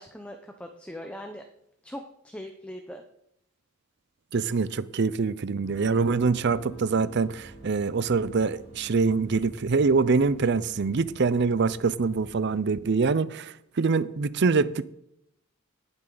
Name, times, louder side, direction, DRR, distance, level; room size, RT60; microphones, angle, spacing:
voice 1, 0.0-1.4 1.8-3.0, equal, 5° left, 0.7 m, -40 dB
voice 2, 4.3-14.8, right 4 dB, 50° right, 0.5 m, -24 dB
Guitar, 5.6-12.7, right 1 dB, 75° left, 2.6 m, -51 dB
sound 1, 5.6-12.5, equal, 30° right, 2.5 m, -50 dB
18.5 x 7.7 x 3.9 m
head